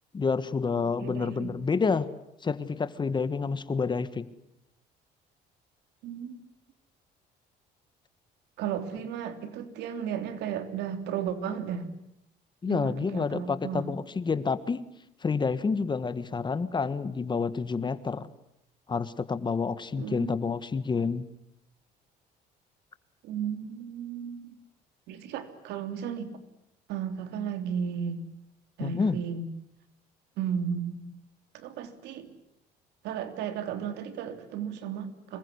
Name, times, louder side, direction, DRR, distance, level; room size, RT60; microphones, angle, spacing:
voice 1, 0.1-2.1 2.4-4.3 12.6-14.8 15.2-18.3 18.9-21.3 28.8-29.2, left 5 dB, 25° left, 14 dB, 1.6 m, -29 dB
voice 2, 0.8-1.5 6.0-6.4 8.6-11.9 12.7-13.8 19.9-20.4 23.2-24.5 25.1-26.4 26.9-28.2 28.8-29.5 30.4-31.0 31.5-32.3 33.0-35.4, right 7 dB, 85° right, 9 dB, 3.3 m, -34 dB
26.0 x 22.5 x 9.9 m, 0.78 s
cardioid pair, 110°, 17 cm